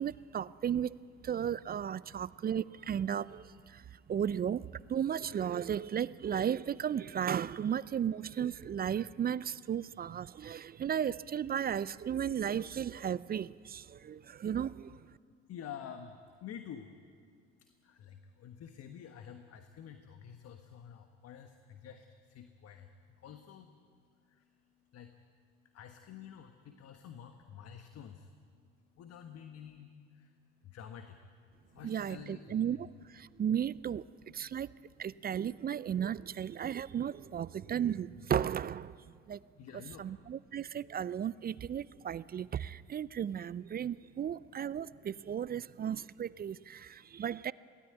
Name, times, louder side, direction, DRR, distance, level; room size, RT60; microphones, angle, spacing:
voice 1, 0.0-15.0 31.8-34.0 34.3-34.7 35.0-39.0 39.3-39.4 40.0-47.5, right 9 dB, 30° right, 0.5 m, -35 dB
voice 2, 15.5-16.1 16.4-16.9 18.0-22.0 22.3-22.8 23.2-23.7 24.9-25.1 25.7-28.2 29.0-29.9 30.7-31.2 31.7-32.8 39.6-40.0, left 8 dB, 50° left, 1.4 m, -48 dB
23.0 x 17.5 x 9.0 m
hypercardioid pair, 60°, 31 cm